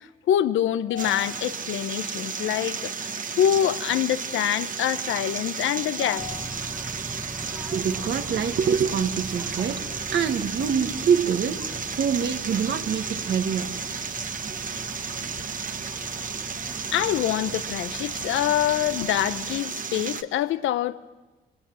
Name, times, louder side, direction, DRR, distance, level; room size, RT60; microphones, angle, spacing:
voice 1, 0.3-2.9 3.4-6.5 16.9-21.0, left 11 dB, 80° left, 1.0 m, -25 dB
sound 1, 1.0-20.2, right 5 dB, 40° right, 1.3 m, -33 dB
Bird / Train, 6.2-19.6, right 1 dB, 5° right, 1.3 m, -42 dB
voice 2, 7.5-15.9, right 7 dB, 60° right, 1.7 m, -27 dB
25.5 x 24.5 x 7.8 m
cardioid pair, 90°, 20 cm